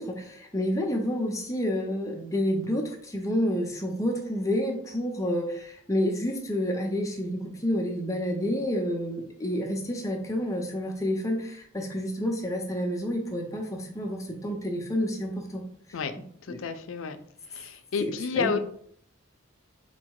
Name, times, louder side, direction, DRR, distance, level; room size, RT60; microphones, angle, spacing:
voice 1, 0.0-15.6 16.5-16.6 18.0-18.6, equal, 15° left, 2 dB, 0.6 m, -29 dB
voice 2, 16.4-17.2 17.5-18.6, left 6 dB, 80° left, 9 dB, 0.5 m, -30 dB
4.6 x 2.1 x 4.6 m, 0.62 s
head